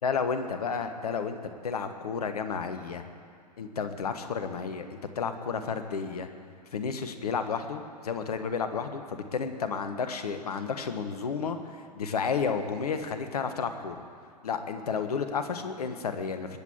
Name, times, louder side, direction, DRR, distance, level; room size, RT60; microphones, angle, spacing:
voice 1, 0.0-1.4 1.6-3.0 3.6-6.3 6.7-11.6 12.0-14.0 14.4-16.6, left 5 dB, 65° left, 8 dB, 1.4 m, -31 dB
21.0 x 8.5 x 7.3 m, 2.2 s
figure-of-eight pair, 100°, 21 cm